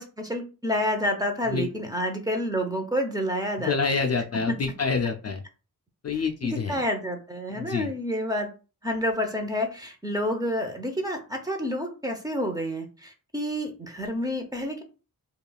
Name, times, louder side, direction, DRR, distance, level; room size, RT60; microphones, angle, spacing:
voice 1, 0.0-3.7 4.5-4.6 6.4-8.5 8.8-14.8, equal, 10° right, 3 dB, 0.7 m, -29 dB
voice 2, 3.7-5.4 6.0-6.8 7.6-7.9, left 5 dB, 45° left, 5 dB, 0.4 m, -27 dB
5.1 x 2.4 x 2.3 m, 0.33 s
wide cardioid pair, 135°, 35 cm